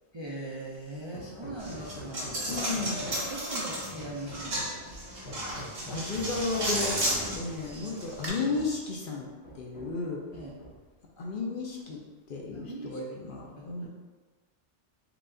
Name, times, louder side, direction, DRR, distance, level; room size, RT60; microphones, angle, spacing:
voice 1, 0.1-2.4 3.1-4.9 7.6-7.9 8.5-8.6 10.3-10.6 12.5-13.0 13.6-13.9, right 2 dB, 40° right, -5 dB, 0.4 m, -41 dB
Hammer, 1.1-3.4 4.0-4.8 5.3-6.2 7.2-7.3 7.7-7.8 8.2-8.9 9.4-10.1 10.3-11.0, left 1 dB, 80° left, 1.1 m, -45 dB
Coin (dropping), 1.6-8.3, right 1 dB, 60° right, 1.4 m, -33 dB
voice 2, 2.5-3.0 5.6-7.0 7.4-9.3 9.5-10.2 11.2-12.0 12.3-13.9, left 3 dB, 55° left, -1 dB, 0.7 m, -33 dB
4.8 x 2.4 x 3.7 m, 1.3 s
omnidirectional pair, 1.1 m